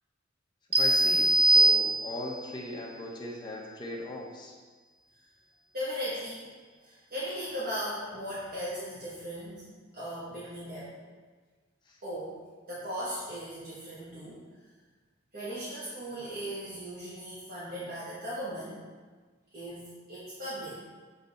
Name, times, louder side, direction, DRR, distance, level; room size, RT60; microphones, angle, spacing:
voice 1, 0.7-4.5 11.9-12.0, left 1 dB, 25° left, -2 dB, 0.9 m, -39 dB
sound 1, 0.7-2.4, right 2 dB, 30° right, 0.4 m, -22 dB
voice 2, 5.7-6.4 6.8-9.6 9.9-10.9 12.0-12.4 12.7-14.4 15.3-18.8 19.5-20.8, equal, 50° right, -9 dB, 1.2 m, -37 dB
6.8 x 3.3 x 4.1 m, 1.4 s
head